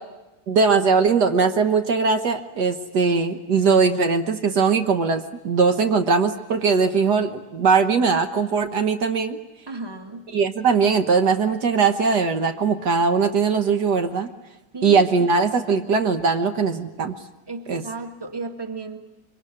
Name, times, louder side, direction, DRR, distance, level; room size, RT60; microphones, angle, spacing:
voice 1, 0.5-9.4 10.3-14.3 14.8-17.1 17.7-17.8, right 5 dB, 70° right, 6 dB, 1.8 m, -20 dB
voice 2, 9.7-10.3 14.7-15.1 17.5-19.0, right 3 dB, 15° right, 5 dB, 1.9 m, -34 dB
25.0 x 24.5 x 9.9 m, 1.0 s
omnidirectional pair, 1.9 m